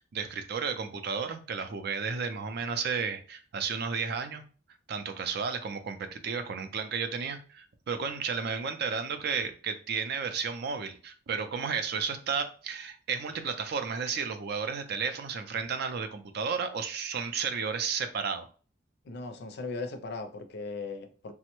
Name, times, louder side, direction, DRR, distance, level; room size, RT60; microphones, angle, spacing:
voice 1, 0.0-4.4 4.9-18.5, right 5 dB, 60° right, 0.4 m, -33 dB
voice 2, 19.1-21.3, left 3 dB, 60° left, 0.4 m, -38 dB
3.2 x 2.1 x 3.0 m
head